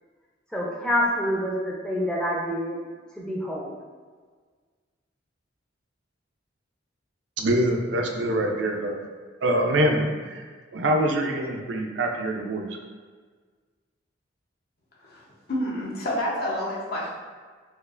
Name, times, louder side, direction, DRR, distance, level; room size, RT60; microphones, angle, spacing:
voice 1, 0.5-2.8 3.1-3.8, equal, 5° left, -4 dB, 0.5 m, -27 dB
voice 2, 7.4-9.0 9.4-10.4 10.7-12.7, right 1 dB, 65° right, 2 dB, 0.4 m, -24 dB
voice 3, 15.0-17.1, left 1 dB, 50° left, -4 dB, 0.7 m, -29 dB
4.3 x 2.4 x 2.4 m, 1.5 s
head